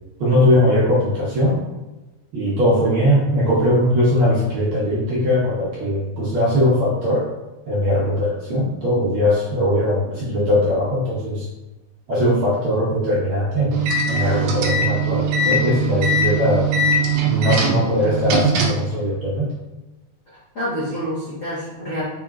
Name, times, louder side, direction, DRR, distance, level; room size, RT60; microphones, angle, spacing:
voice 1, 0.2-1.6 2.3-7.3 7.7-11.4 12.1-13.8 14.1-16.7 17.2-19.5, left 1 dB, 60° right, -7 dB, 1.5 m, -20 dB
sound 1, 13.7-18.9, right 3 dB, 80° right, 1.8 m, -21 dB
voice 2, 20.3-22.0, equal, 75° left, -9 dB, 0.7 m, -28 dB
4.6 x 3.8 x 2.4 m, 1.1 s
omnidirectional pair, 3.4 m